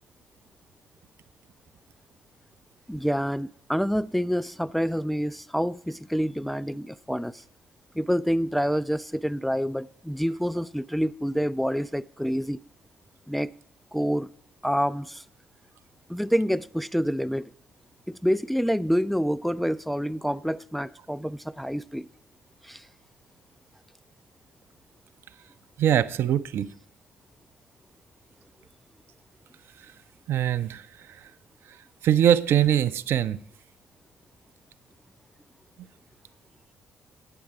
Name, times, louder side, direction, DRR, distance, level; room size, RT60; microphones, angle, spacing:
voice 1, 2.9-7.4 8.0-12.6 13.3-13.5 13.9-14.3 14.6-15.2 16.1-17.5 18.2-22.1 22.6-22.8, equal, ahead, 14 dB, 0.3 m, -27 dB
voice 2, 25.8-26.7 30.3-30.8 32.0-33.4, right 10 dB, 55° right, 13 dB, 0.5 m, -22 dB
8.7 x 7.7 x 5.8 m, 0.62 s
figure-of-eight pair, 45°, 5 cm